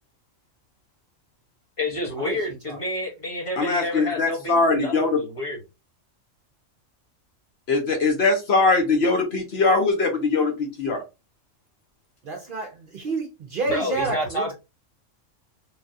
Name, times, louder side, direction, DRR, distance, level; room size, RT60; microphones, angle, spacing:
voice 1, 1.8-5.6 13.7-14.5, left 1 dB, 30° left, 0.9 m, -29 dB
voice 2, 3.6-5.2 7.7-11.0, left 3 dB, 60° left, 0.8 m, -21 dB
voice 3, 12.2-14.5, right 3 dB, 55° right, 0.7 m, -29 dB
3.3 x 2.3 x 2.5 m
omnidirectional pair, 1.3 m